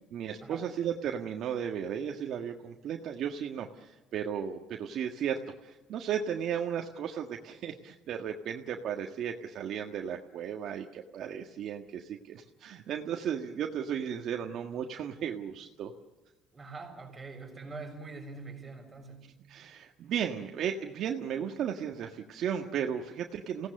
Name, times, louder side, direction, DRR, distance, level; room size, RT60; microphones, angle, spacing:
voice 1, 0.1-15.9 19.5-23.7, right 8 dB, 55° right, 3 dB, 1.6 m, -35 dB
voice 2, 16.5-19.3, right 3 dB, 20° right, 2 dB, 6.7 m, -44 dB
28.5 x 18.0 x 6.6 m, 1.1 s
cardioid pair, 125°, 0 cm